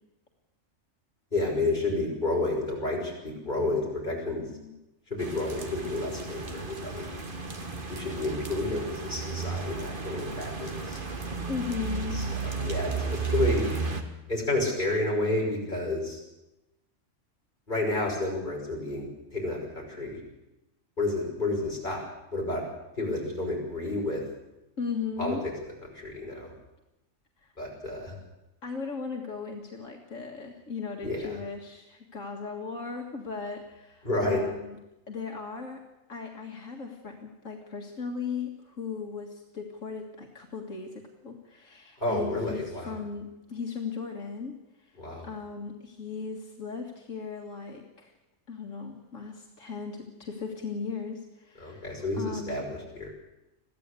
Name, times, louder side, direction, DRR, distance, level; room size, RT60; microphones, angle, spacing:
voice 1, 1.3-4.5 5.1-7.1 7.9-11.0 12.1-13.7 14.3-16.2 17.7-20.2 21.0-22.0 22.3-22.6 23.0-24.2 25.2-25.4 25.9-26.5 27.6-28.2 31.0-31.2 34.0-34.4 42.0-43.0 45.0-45.3 51.6-53.1, left 2 dB, 40° left, -1 dB, 6.1 m, -30 dB
voice 2, 4.4-4.7 11.5-12.2 24.8-25.4 27.4-27.5 28.6-34.8 35.1-35.8 36.1-44.9 45.2-48.1 48.5-52.6, left 5 dB, 80° left, 1 dB, 2.3 m, -37 dB
sound 1, 5.2-14.0, right 4 dB, 40° right, 1.9 m, -33 dB
22.0 x 15.0 x 8.3 m, 0.97 s
omnidirectional pair, 1.3 m